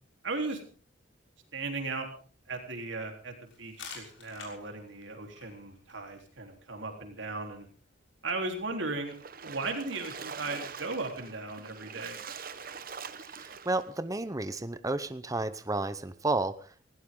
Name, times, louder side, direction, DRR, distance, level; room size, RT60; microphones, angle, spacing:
voice 1, 0.2-0.6 1.5-2.1 2.5-7.7 8.2-12.2, right 3 dB, 75° right, 4 dB, 3.7 m, -36 dB
sound 1, 3.5-9.0, left 5 dB, 80° left, 6.6 m, -52 dB
Splash splatter, 9.1-13.9, right 6 dB, 50° right, 1.1 m, -43 dB
voice 2, 13.3-16.9, right 2 dB, 20° right, 12 dB, 0.8 m, -32 dB
20.0 x 17.0 x 3.8 m, 0.40 s
head